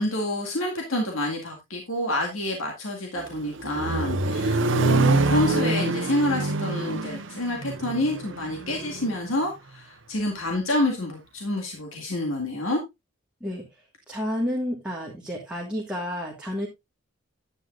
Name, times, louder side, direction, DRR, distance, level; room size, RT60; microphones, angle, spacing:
voice 1, 0.0-12.8, left 1 dB, 80° left, 1 dB, 2.0 m, -28 dB
Accelerating revving vroom, 3.2-9.2, right 2 dB, 65° right, 1.0 m, -25 dB
voice 2, 14.1-16.7, equal, 5° right, -2 dB, 1.6 m, -30 dB
10.5 x 9.0 x 2.5 m, 0.21 s
head